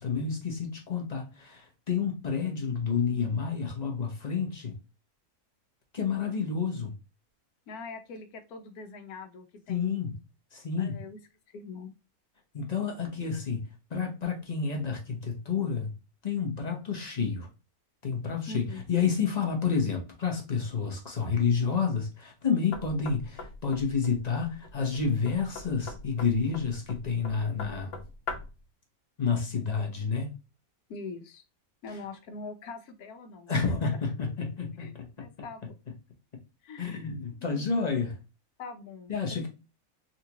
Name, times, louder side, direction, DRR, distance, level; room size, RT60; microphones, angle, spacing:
voice 1, 0.0-4.8 5.9-6.9 9.7-10.2 10.5-11.0 12.5-15.9 16.2-17.5 18.0-28.0 29.2-30.3 33.5-35.3 36.8-38.2 39.1-39.5, left 5 dB, 40° left, 0.7 m, -30 dB
voice 2, 7.7-9.9 10.8-11.2 11.5-11.9 18.5-18.8 30.9-31.4 31.8-33.6 34.8-34.9 35.2-35.7 36.6-36.9 37.4-37.7 38.6-39.5, left 3 dB, 85° left, 1.2 m, -43 dB
Knock, 22.7-28.6, left 3 dB, 55° left, 1.2 m, -42 dB
3.9 x 2.4 x 2.7 m
omnidirectional pair, 1.5 m